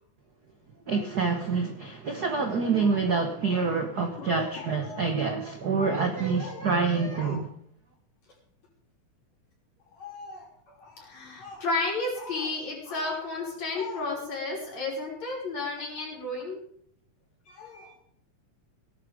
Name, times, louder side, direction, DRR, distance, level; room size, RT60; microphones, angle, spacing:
voice 1, 0.9-7.5, right 4 dB, 55° right, 5 dB, 1.1 m, -27 dB
voice 2, 2.6-3.0 4.1-5.1 5.8-5.9 6.4-6.6 7.1-7.4 9.9-16.6 17.5-17.9, left 3 dB, 60° left, -3 dB, 6.4 m, -34 dB
17.5 x 11.5 x 5.1 m, 0.66 s
omnidirectional pair, 3.5 m